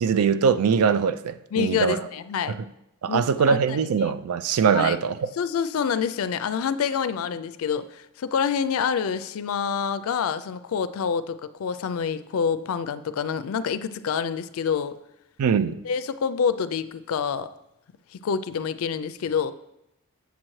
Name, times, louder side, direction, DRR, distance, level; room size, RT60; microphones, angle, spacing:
voice 1, 0.0-2.0 2.5-2.6 3.0-5.3 15.4-15.8, right 6 dB, 90° right, 12 dB, 0.4 m, -22 dB
voice 2, 1.5-2.5 3.1-3.6 4.7-5.0 5.4-15.0 15.8-17.5 18.1-19.5, left 6 dB, 75° left, 13 dB, 0.4 m, -27 dB
7.5 x 7.0 x 3.1 m, 0.85 s
head